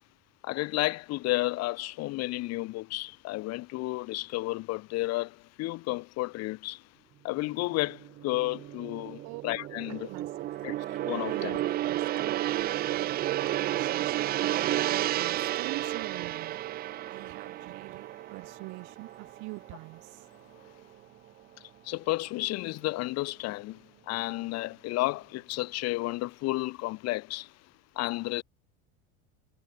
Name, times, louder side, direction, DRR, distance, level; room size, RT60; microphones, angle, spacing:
voice 1, 0.4-6.8 7.2-10.1 10.6-10.7 11.0-11.6 21.9-23.8 24.1-27.5 28.0-28.4, left 19 dB, 50° left, 1.2 m, -32 dB
Gong, 7.8-20.2 20.6-20.8, right 14 dB, 30° right, 0.4 m, -32 dB
voice 2, 9.9-10.5 11.3-12.4 12.8-20.3, right 27 dB, 60° right, 1.6 m, -45 dB
supercardioid pair, 130°, 33 cm